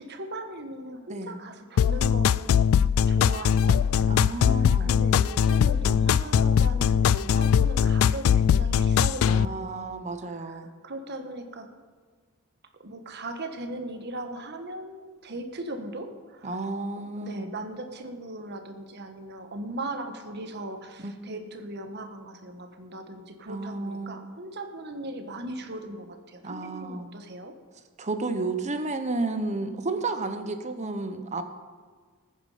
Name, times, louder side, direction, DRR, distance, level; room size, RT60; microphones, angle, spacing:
voice 1, 0.0-2.5 3.1-10.0 10.3-11.7 12.8-16.6 17.0-27.5, right 1 dB, 55° right, 6 dB, 1.4 m, -38 dB
sound 1, 1.8-9.5, left 8 dB, 75° left, 0.3 m, -21 dB
voice 2, 4.1-4.9 9.3-10.7 16.4-17.5 21.0-21.3 23.5-24.2 26.4-27.1 28.0-31.4, right 3 dB, 35° right, 8 dB, 0.9 m, -32 dB
19.5 x 9.5 x 5.0 m, 1.5 s
head